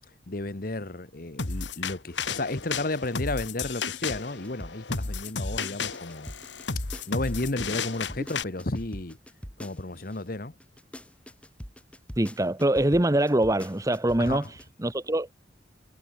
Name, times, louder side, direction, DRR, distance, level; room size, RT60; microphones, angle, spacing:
voice 1, 0.3-6.3 7.1-9.2 9.6-10.5 14.2-14.5, left 2 dB, 55° left, 1.3 m, -33 dB
sound 1, 1.4-8.4, left 5 dB, 90° left, 1.9 m, -33 dB
sound 2, 3.4-10.2 10.6-14.6, equal, 5° left, 3.5 m, -42 dB
voice 2, 12.2-15.3, right 1 dB, 20° right, 0.9 m, -24 dB
head